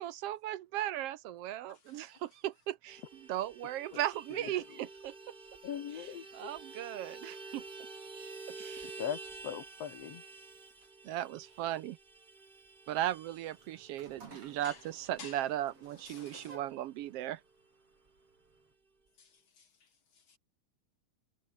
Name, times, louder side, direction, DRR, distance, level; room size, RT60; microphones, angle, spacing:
voice 1, 0.0-5.1 5.9-7.6 8.6-9.0 11.0-12.0 12.9-17.4, right 13 dB, 75° right, 1.5 m, -37 dB
voice 2, 1.7-2.2 14.3-14.9 15.2-15.4 16.1-16.6 19.2-20.4, left 6 dB, 45° left, 2.6 m, -53 dB
Vehicle horn car horn honking, 2.9-16.8 17.1-17.2 17.5-17.7 17.9-18.6, right 3 dB, 20° right, 1.6 m, -50 dB
voice 3, 5.6-6.5 9.0-10.2, left 9 dB, 60° left, 2.6 m, -40 dB
sound 1, 13.5-18.7, right 3 dB, 50° right, 7.0 m, -57 dB
omnidirectional pair, 3.4 m